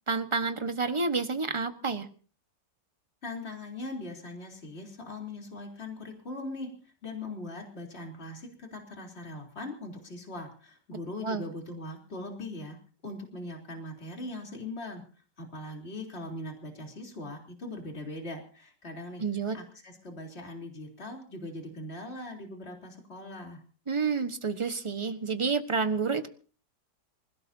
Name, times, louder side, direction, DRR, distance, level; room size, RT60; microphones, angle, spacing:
voice 1, 0.1-2.1 11.2-11.4 19.2-19.6 23.9-26.3, right 4 dB, 20° right, 8 dB, 1.3 m, -29 dB
voice 2, 3.2-12.8 13.0-15.0 15.4-19.2 19.5-23.6, left 2 dB, 35° left, 1 dB, 3.9 m, -40 dB
27.0 x 17.5 x 2.8 m, 0.41 s
omnidirectional pair, 1.9 m